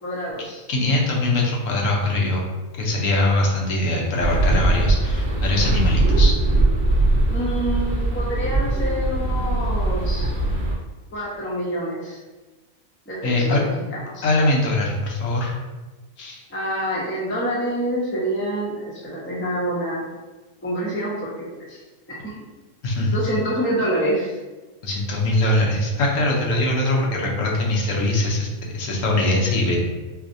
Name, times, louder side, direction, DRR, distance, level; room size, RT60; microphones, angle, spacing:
voice 1, 0.0-0.6 7.3-10.3 11.1-12.2 13.1-13.8 14.1-14.3 16.5-20.0 20.6-21.8 22.1-22.3 23.1-24.4, right 1 dB, 15° left, -6 dB, 0.5 m, -27 dB
voice 2, 0.7-2.5 2.8-6.4 13.2-13.6 14.2-15.5 16.2-16.4 22.8-23.2 24.8-29.8, left 2 dB, 70° left, -1 dB, 1.0 m, -22 dB
sound 1, 4.2-10.7, right 2 dB, 55° right, 0.8 m, -20 dB
4.6 x 2.1 x 2.6 m, 1.2 s
omnidirectional pair, 1.5 m